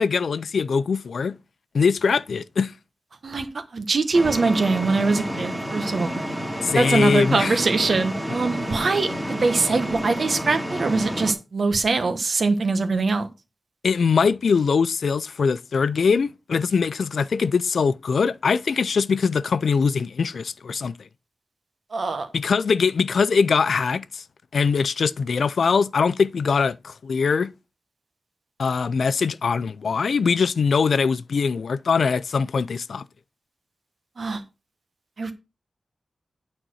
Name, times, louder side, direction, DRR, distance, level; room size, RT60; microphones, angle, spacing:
voice 1, 0.0-1.3 1.7-2.7 6.6-7.6 13.8-20.9 22.3-24.2 24.5-27.5 28.6-33.0, left 5 dB, 75° left, 0.4 m, -22 dB
voice 2, 3.2-6.1 6.7-13.3 21.9-22.3 34.2-34.4 35.2-35.3, right 3 dB, 55° right, 1.3 m, -23 dB
sound 1, 4.1-11.3, equal, 5° right, 2.3 m, -30 dB
9.0 x 4.2 x 6.3 m
wide cardioid pair, 130°, 0 cm